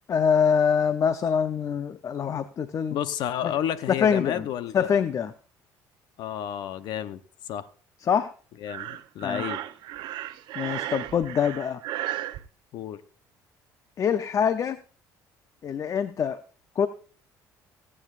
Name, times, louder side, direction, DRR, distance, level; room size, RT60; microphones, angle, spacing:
voice 1, 0.1-3.0 3.4-3.5 3.9-4.5 4.7-5.3 8.0-8.3 9.2-9.4 10.5-11.8 14.0-14.8 15.6-16.4 16.8-16.9, left 7 dB, 45° left, 12 dB, 0.6 m, -24 dB
voice 2, 2.9-5.0 6.2-7.7 8.6-9.6 12.7-13.0, left 10 dB, 70° left, 13 dB, 0.9 m, -31 dB
Breathing, 8.7-12.4, right 14 dB, 75° right, 0.8 m, -34 dB
24.5 x 8.7 x 2.5 m, 0.40 s
supercardioid pair, 90°, 8 cm